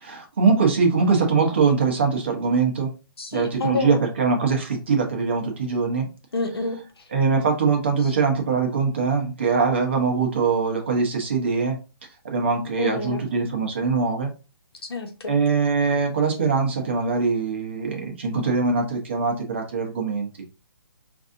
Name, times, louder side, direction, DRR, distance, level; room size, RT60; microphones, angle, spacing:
voice 1, 0.0-2.9 3.3-6.1 7.1-11.8 12.2-14.3 15.3-20.3, right 4 dB, 30° right, 2 dB, 0.7 m, -22 dB
voice 2, 3.2-4.0 6.3-6.8 12.8-13.2 14.9-15.3, left 3 dB, 85° left, 4 dB, 1.1 m, -28 dB
4.6 x 2.5 x 2.6 m, 0.32 s
hypercardioid pair, 175°, 13 cm